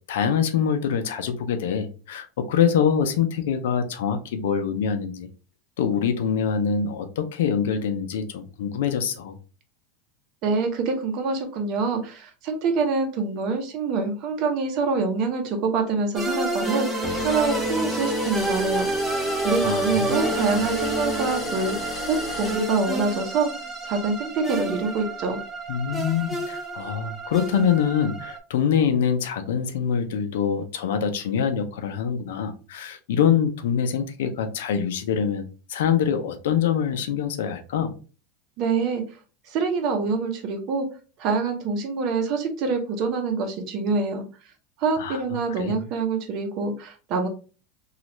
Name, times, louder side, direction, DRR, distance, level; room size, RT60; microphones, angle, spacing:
voice 1, 0.1-5.3 5.8-9.4 19.6-20.2 20.5-20.6 25.7-37.9 45.0-45.2 45.6-45.8, left 7 dB, 85° left, 8 dB, 0.5 m, -24 dB
voice 2, 10.4-18.9 19.1-21.8 22.1-23.5 23.8-25.4 38.6-39.2 39.4-40.9 41.2-44.5 44.8-47.3, right 4 dB, 50° right, 5 dB, 0.8 m, -26 dB
sound 1, 16.1-28.4, right 2 dB, 10° right, 0.7 m, -29 dB
sound 2, 17.0-23.2, left 3 dB, 30° left, 0.7 m, -34 dB
3.0 x 2.4 x 2.9 m, 0.36 s
supercardioid pair, 130°, 0 cm